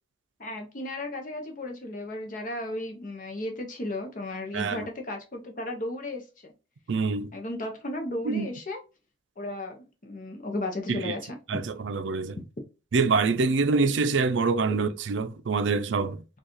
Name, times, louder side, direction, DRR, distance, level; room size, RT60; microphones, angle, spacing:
voice 1, 0.4-6.5 7.3-8.8 9.4-11.4, left 1 dB, 45° left, 0.8 m, -35 dB
voice 2, 4.5-4.9 6.9-7.3 8.2-8.5 10.9-11.1 11.5-12.4 12.9-16.2, right 4 dB, 75° right, 0.4 m, -25 dB
4.5 x 2.4 x 3.0 m
head